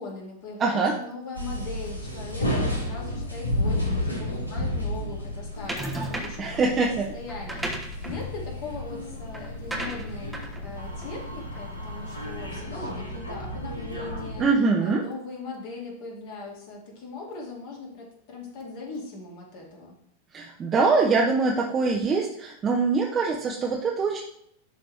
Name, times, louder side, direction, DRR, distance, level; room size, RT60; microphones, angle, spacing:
voice 1, 0.0-14.5 14.8-19.9, left 3 dB, 45° left, -2 dB, 2.6 m, -40 dB
voice 2, 0.6-0.9 6.4-7.1 14.4-15.0 20.3-24.2, right 4 dB, 25° right, -2 dB, 1.0 m, -23 dB
sound 1, 1.3-14.4, left 1 dB, 80° left, 1.5 m, -32 dB
sound 2, 5.7-6.5 7.3-12.0, right 1 dB, 5° right, 1.2 m, -36 dB
11.0 x 4.0 x 3.5 m, 0.71 s
figure-of-eight pair, 90°, 0 cm